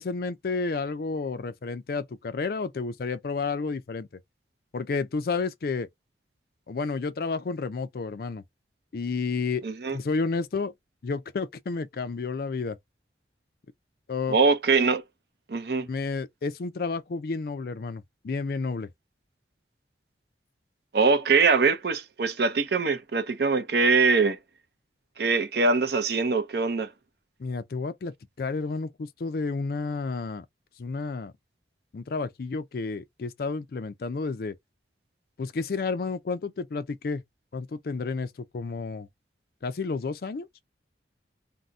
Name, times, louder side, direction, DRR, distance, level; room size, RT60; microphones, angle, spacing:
voice 1, 0.0-4.1 4.7-5.9 6.7-8.4 8.9-9.6 9.9-10.7 11.0-12.8 14.1-14.4 15.9-18.9 27.4-30.4 30.8-31.3 31.9-34.5 35.4-37.2 37.5-39.1 39.6-40.5, left 4 dB, 55° left, 0.4 m, -31 dB
voice 2, 9.6-10.0 14.3-15.0 15.5-15.9 20.9-24.4 25.2-26.9, right 4 dB, 60° right, 0.6 m, -23 dB
2.7 x 2.1 x 3.4 m
head